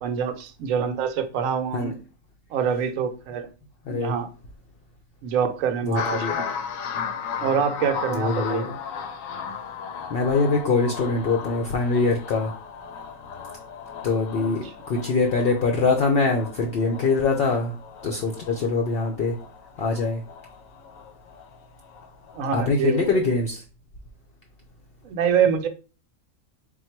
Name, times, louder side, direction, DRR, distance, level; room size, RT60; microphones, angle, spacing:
voice 1, 0.0-1.9 2.5-3.5 3.9-4.3 5.2-6.5 7.4-8.7 22.3-23.2 25.0-25.7, right 7 dB, 80° right, 9 dB, 1.0 m, -25 dB
voice 2, 3.9-4.2 5.8-6.4 8.1-8.7 10.1-12.5 14.0-17.7 18.0-19.4 19.8-20.2 22.5-23.6, left 3 dB, 60° left, 3 dB, 0.7 m, -23 dB
sound 1, 6.0-22.6 22.9-23.4, left 7 dB, 85° left, 1.0 m, -36 dB
3.7 x 2.3 x 4.4 m, 0.34 s
omnidirectional pair, 1.4 m